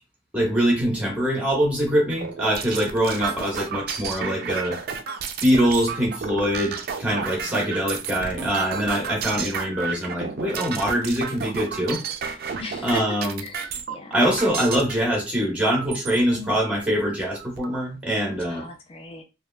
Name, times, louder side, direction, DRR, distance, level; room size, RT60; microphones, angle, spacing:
voice 1, 0.3-4.8 5.4-12.0 12.8-13.4 14.1-18.7, equal, 5° right, -1 dB, 1.0 m, -23 dB
sound 1, 2.1-14.9 15.6-16.2 16.7-16.8 17.1-17.8, right 6 dB, 50° right, 0.3 m, -32 dB
voice 2, 7.3-7.7 12.6-14.2 16.3-16.6 18.5-19.2, left 2 dB, 30° left, 3 dB, 0.4 m, -37 dB
3.1 x 2.3 x 2.2 m, 0.28 s
head